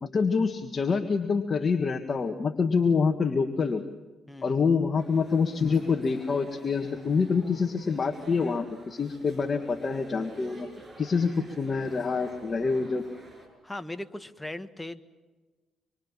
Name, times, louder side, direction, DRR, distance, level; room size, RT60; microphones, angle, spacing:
voice 1, 0.0-3.8 4.4-10.7 11.0-13.1, left 5 dB, 40° left, 6 dB, 1.8 m, -26 dB
voice 2, 4.3-4.6 13.6-15.0, left 1 dB, 10° left, 9 dB, 1.7 m, -38 dB
sound 1, 5.0-13.5, right 1 dB, 20° right, 8.0 m, -49 dB
26.5 x 24.0 x 7.4 m, 1.3 s
cardioid pair, 90°, 0 cm